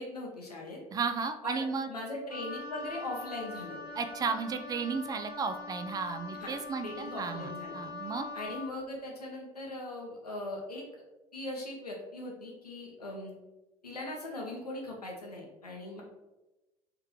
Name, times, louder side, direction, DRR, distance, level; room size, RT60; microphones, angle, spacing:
voice 1, 0.0-0.8 1.4-3.8 6.4-7.8 8.3-10.9 11.3-13.3 13.8-16.0, left 1 dB, 85° left, -1 dB, 0.8 m, -40 dB
voice 2, 0.9-1.9 4.0-7.5 7.7-8.3, right 5 dB, 20° right, 8 dB, 0.3 m, -34 dB
Wind instrument woodwind instrument, 2.3-8.7, left 2 dB, 75° right, 1.4 m, -43 dB
3.5 x 3.3 x 2.9 m, 1.0 s
figure-of-eight pair, 65°, 20 cm